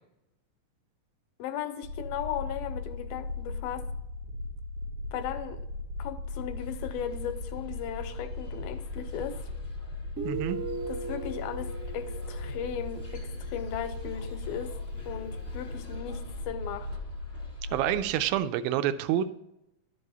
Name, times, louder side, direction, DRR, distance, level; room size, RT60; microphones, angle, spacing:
voice 1, 1.4-3.8 5.1-5.6 6.0-9.4 10.9-14.7 15.1-16.9, left 9 dB, 80° left, 9 dB, 2.3 m, -36 dB
sound 1, 1.8-18.0, left 2 dB, 65° right, 2.0 m, -38 dB
sound 2, 6.6-18.4, left 2 dB, 30° left, 0.9 m, -49 dB
Guitar, 10.2-13.7, right 4 dB, 45° right, 1.0 m, -38 dB
voice 2, 10.2-10.6 17.7-19.3, right 11 dB, 85° right, 11 dB, 2.4 m, -27 dB
12.5 x 5.4 x 4.0 m, 0.88 s
omnidirectional pair, 4.3 m